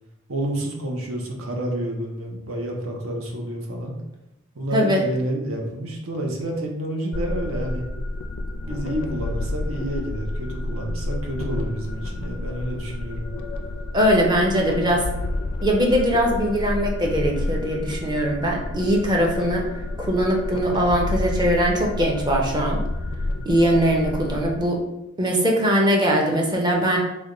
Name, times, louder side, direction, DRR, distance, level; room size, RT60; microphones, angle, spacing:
voice 1, 0.3-3.9 4.6-7.8 8.6-13.3, right 1 dB, 70° right, 0 dB, 0.7 m, -29 dB
voice 2, 4.7-5.0 13.9-15.0 15.6-19.6 20.0-22.8 23.5-24.8 25.2-27.0, equal, 20° right, -1 dB, 0.5 m, -21 dB
sound 1, 7.1-24.6, left 2 dB, 60° left, 0.3 m, -30 dB
3.3 x 2.2 x 3.7 m, 0.91 s
head